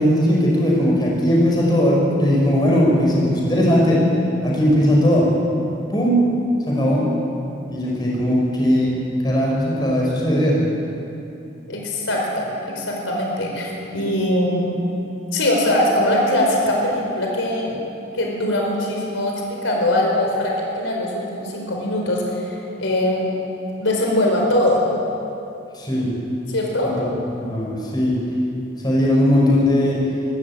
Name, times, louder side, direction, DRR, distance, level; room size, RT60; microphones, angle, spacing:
voice 1, 0.0-4.0 4.4-5.3 5.9-6.2 6.7-7.0 7.7-8.9 9.2-10.6 25.7-26.1 27.0-27.1 27.3-28.2 28.8-30.0, equal, 20° left, -3 dB, 5.4 m, -18 dB
voice 2, 11.7-14.7 15.3-17.8 18.1-23.3 23.8-24.9 26.5-26.9, left 1 dB, 90° left, 0 dB, 4.5 m, -21 dB
23.5 x 13.5 x 8.9 m, 2.7 s
head